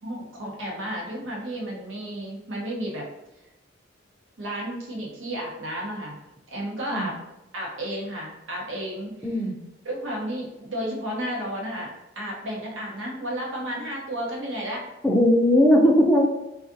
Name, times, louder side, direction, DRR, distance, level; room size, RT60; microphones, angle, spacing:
voice 1, 0.0-3.1 4.4-6.1 6.5-7.1 7.5-9.1 9.8-14.9, equal, 80° right, -3 dB, 0.8 m, -32 dB
voice 2, 9.2-9.6 15.0-16.2, equal, 10° left, -1 dB, 0.4 m, -18 dB
3.5 x 2.3 x 2.6 m, 0.94 s
head